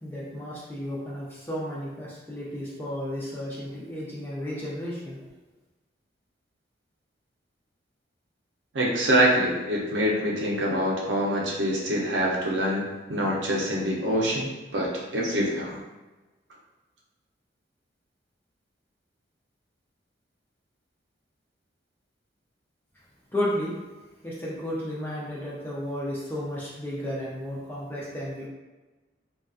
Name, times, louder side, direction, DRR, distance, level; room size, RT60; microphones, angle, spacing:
voice 1, 0.0-5.2 23.3-23.7 24.2-28.5, equal, 10° left, -6 dB, 0.4 m, -33 dB
voice 2, 8.7-15.8, equal, 70° right, -3 dB, 0.6 m, -25 dB
2.4 x 2.3 x 2.4 m, 1.2 s
head